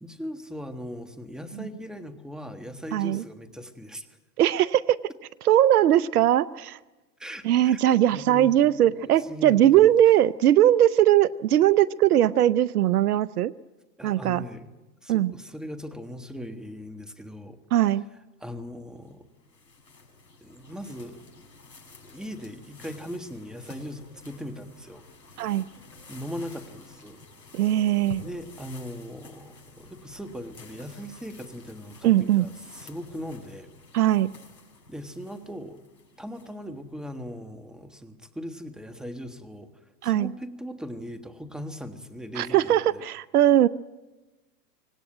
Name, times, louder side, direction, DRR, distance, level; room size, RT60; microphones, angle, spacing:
voice 1, 0.0-4.1 7.2-8.5 9.0-9.9 14.0-14.7 15.0-17.6 18.4-19.2 20.4-21.2 22.1-25.0 26.1-27.2 28.2-33.7 34.9-35.8 36.2-39.7 40.0-43.0, equal, ahead, 8 dB, 1.6 m, -39 dB
voice 2, 2.9-3.2 4.4-5.0 5.4-6.8 7.4-13.5 14.0-14.4 15.1-15.3 17.7-18.0 25.4-25.6 27.5-28.2 32.0-32.5 33.9-34.3 40.0-40.3 42.4-43.7, right 12 dB, 65° right, 18 dB, 0.7 m, -20 dB
sound 1, 19.0-36.8, left 3 dB, 90° left, 6.5 m, -50 dB
25.5 x 18.5 x 9.1 m, 1.2 s
hypercardioid pair, 120°, 49 cm